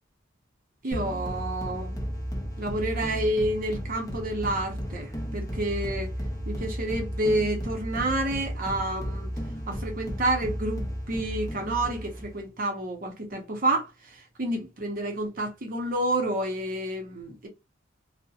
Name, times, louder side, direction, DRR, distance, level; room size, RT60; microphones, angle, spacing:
voice 1, 0.8-2.0 2.6-6.1 6.5-9.3 9.7-17.5, right 1 dB, 45° right, 0.6 m, -29 dB
sound 1, 0.9-12.4, equal, 15° left, 0.5 m, -34 dB
2.7 x 2.0 x 2.3 m
head